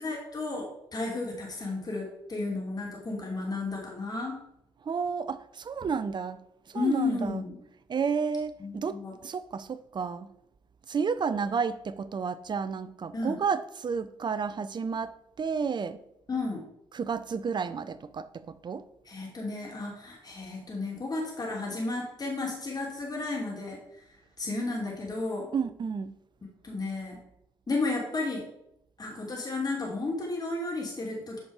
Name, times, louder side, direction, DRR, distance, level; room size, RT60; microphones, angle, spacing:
voice 1, 0.0-4.3 6.7-7.6 8.6-9.1 13.1-13.4 16.3-16.6 19.0-24.0 24.4-25.5 26.6-27.2 27.7-28.4 29.0-31.4, left 3 dB, 35° left, 3.3 m, -33 dB
voice 2, 4.9-6.4 6.7-7.4 7.9-9.0 9.2-10.3 10.9-16.0 16.9-18.3 18.6-18.8 25.5-26.1, right 6 dB, 40° right, 0.7 m, -31 dB
9.0 x 5.3 x 4.9 m
hypercardioid pair, 45°, 12 cm